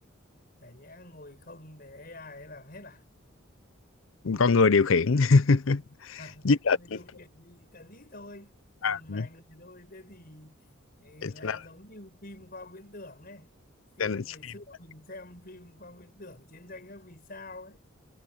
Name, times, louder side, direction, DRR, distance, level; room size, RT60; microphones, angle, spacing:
voice 1, 0.6-3.0 6.2-8.6 8.8-10.6 11.0-13.5 14.0-17.8, left 2 dB, 45° left, 6.2 m, -47 dB
voice 2, 4.2-6.2 6.4-7.0 8.8-9.3 11.2-11.6 14.0-14.2, left 4 dB, 70° left, 0.6 m, -23 dB
head